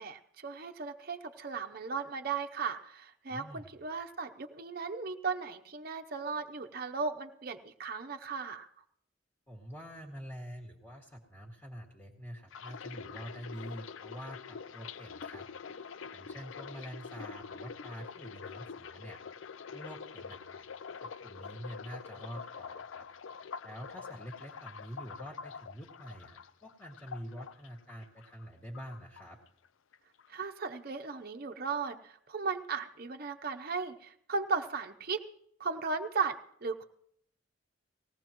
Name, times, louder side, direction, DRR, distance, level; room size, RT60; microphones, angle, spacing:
voice 1, 0.0-8.7 30.3-35.2 35.6-36.8, right 4 dB, 50° right, 5 dB, 0.8 m, -36 dB
voice 2, 3.3-3.7 9.5-15.5 16.1-19.2 19.7-20.6 21.0-23.1 23.6-29.4, equal, 15° left, -2 dB, 2.1 m, -46 dB
sound 1, 12.5-28.5 28.7-29.7 29.9-30.3, left 6 dB, 85° left, 0.5 m, -46 dB
19.0 x 17.0 x 3.0 m, 0.70 s
head